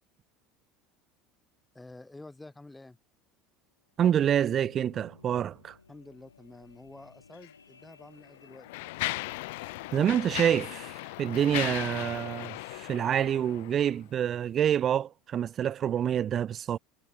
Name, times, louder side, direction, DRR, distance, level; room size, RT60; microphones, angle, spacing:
voice 1, 1.7-3.0 5.9-8.9, left 2 dB, 10° left, 3.5 m, -49 dB
sound 1, 3.8-14.3 14.9-15.0, left 5 dB, 85° left, 4.2 m, -58 dB
voice 2, 4.0-5.7 9.9-16.8, right 9 dB, 40° right, 0.9 m, -27 dB
Mechanisms, 7.3-7.5 8.2-14.0, left 23 dB, 65° left, 1.0 m, -37 dB
figure-of-eight pair, 70°, 0 cm